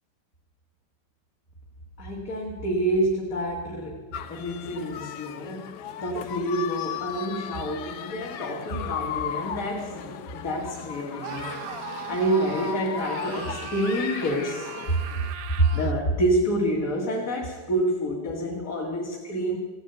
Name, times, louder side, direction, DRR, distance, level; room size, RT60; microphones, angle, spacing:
voice 1, 2.0-4.0 4.3-11.6 12.1-14.7 15.6-19.6, right 1 dB, 40° left, -2 dB, 2.2 m, -27 dB
sound 1, 4.1-15.3, left 9 dB, 70° left, 1.0 m, -36 dB
Screaming, 11.2-16.0, right 10 dB, 80° right, 0.8 m, -39 dB
15.5 x 10.0 x 8.0 m, 1.4 s
omnidirectional pair, 2.4 m